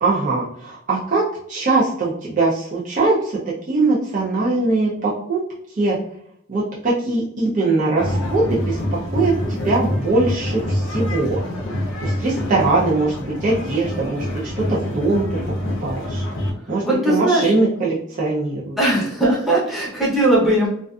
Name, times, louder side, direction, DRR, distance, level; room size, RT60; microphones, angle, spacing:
voice 1, 0.0-1.2 1.5-3.4 3.7-5.4 5.8-6.0 6.5-8.8 9.1-11.4 12.0-15.2 15.8-16.2 16.7-18.8, right 3 dB, 35° right, -6 dB, 0.5 m, -21 dB
sound 1, 8.0-16.5, left 1 dB, 55° left, 0.6 m, -26 dB
voice 2, 16.8-17.5 18.8-20.7, right 1 dB, ahead, -7 dB, 0.8 m, -18 dB
2.4 x 2.3 x 2.3 m, 0.69 s
head